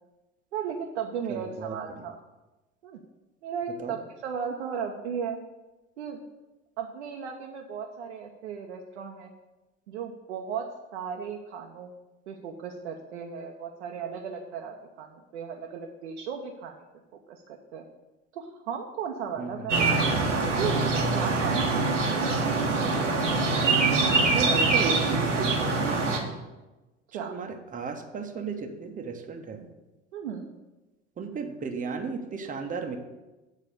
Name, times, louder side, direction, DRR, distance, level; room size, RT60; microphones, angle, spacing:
voice 1, 0.5-2.2 2.8-3.0 3.4-5.4 6.0-6.2 6.8-9.3 9.9-10.7 10.9-11.9 12.3-16.7 17.3-17.8 18.3-19.9 20.4-20.8 21.1-22.0 27.1-27.3 30.1-30.5, right 7 dB, 65° right, 1 dB, 0.8 m, -36 dB
voice 2, 1.3-2.0 3.8-4.0 19.4-19.8 24.3-26.3 27.2-29.7 31.2-33.0, right 5 dB, 20° right, 5 dB, 0.9 m, -34 dB
sound 1, 19.7-26.2, right 3 dB, 80° right, 1.1 m, -24 dB
8.5 x 4.1 x 6.6 m, 1.1 s
figure-of-eight pair, 70°, 36 cm